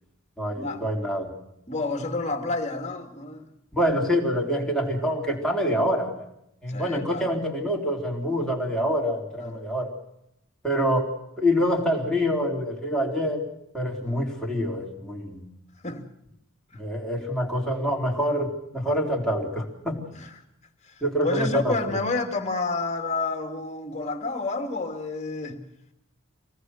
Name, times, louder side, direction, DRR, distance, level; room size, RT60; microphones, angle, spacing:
voice 1, 0.4-1.3 3.7-6.3 6.6-9.9 10.6-11.1 11.4-15.4 16.7-20.1 21.0-21.8, equal, 5° left, 3.7 m, -26 dB
voice 2, 1.7-3.4 6.7-7.3 9.4-9.6 14.0-14.2 15.8-16.0 20.1-20.3 20.8-25.6, left 3 dB, 30° left, 2.5 m, -30 dB
25.0 x 18.5 x 6.5 m
head